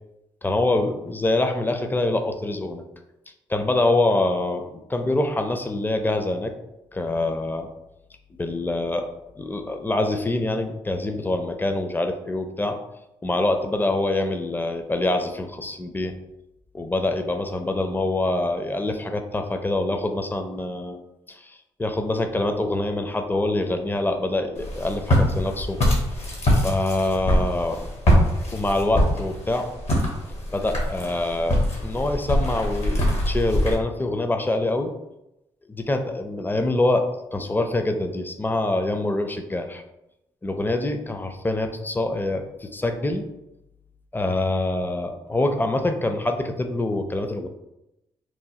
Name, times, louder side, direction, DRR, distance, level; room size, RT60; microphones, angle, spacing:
voice 1, 0.4-2.8 3.5-6.5 6.9-7.7 8.4-9.0 9.4-12.8 13.2-16.1 16.7-21.0 21.3-25.8 26.6-27.8 28.5-29.7 30.5-31.6 31.8-34.9 35.7-37.0 37.3-39.8 40.4-43.3 44.1-47.5, left 2 dB, 15° left, 6 dB, 0.4 m, -25 dB
Walk footsteps, 24.6-33.7, equal, 65° left, 1.0 m, -23 dB
3.0 x 2.1 x 2.8 m, 0.89 s
supercardioid pair, 50°, 12 cm